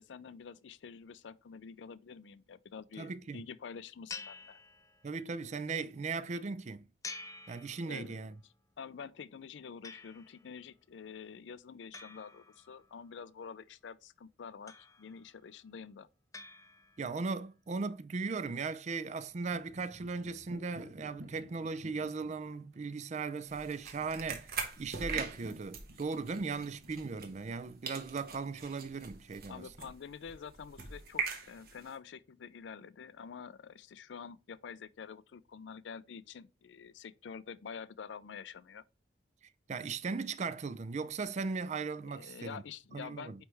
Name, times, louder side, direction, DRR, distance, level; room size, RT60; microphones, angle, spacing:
voice 1, 0.0-4.6 7.8-8.2 8.8-16.1 29.5-38.8 42.0-43.4, left 6 dB, 80° left, 0.4 m, -47 dB
voice 2, 3.0-3.4 5.0-6.9 7.5-8.4 17.0-29.7 39.7-42.6 42.9-43.4, right 4 dB, 40° right, 0.4 m, -38 dB
sound 1, 4.1-5.3 7.0-8.3 9.8-10.6 11.9-13.1 14.7-15.4 16.3-17.2, left 4 dB, 20° left, 0.4 m, -49 dB
sound 2, 19.3-28.9, equal, 80° right, 1.4 m, -53 dB
sound 3, 23.4-27.6 27.8-31.9, right 5 dB, 55° right, 1.2 m, -42 dB
9.0 x 3.3 x 3.3 m
head